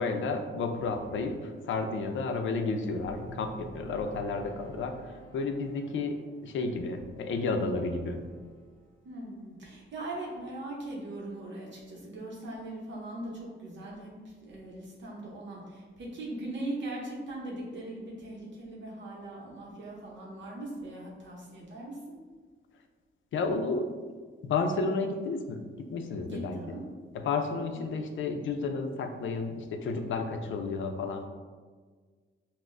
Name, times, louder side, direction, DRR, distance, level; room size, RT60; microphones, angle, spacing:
voice 1, 0.0-4.9 5.3-6.2 6.4-8.2 23.3-23.9 24.4-25.6 25.9-26.8 27.1-31.3, left 3 dB, 70° left, 5 dB, 0.5 m, -31 dB
sound 1, 0.8-9.0, right 1 dB, 10° left, 0.7 m, -51 dB
voice 2, 9.0-22.2 26.3-26.8, right 1 dB, 60° right, -4 dB, 0.8 m, -40 dB
5.8 x 2.1 x 2.5 m, 1.5 s
wide cardioid pair, 125°, 21 cm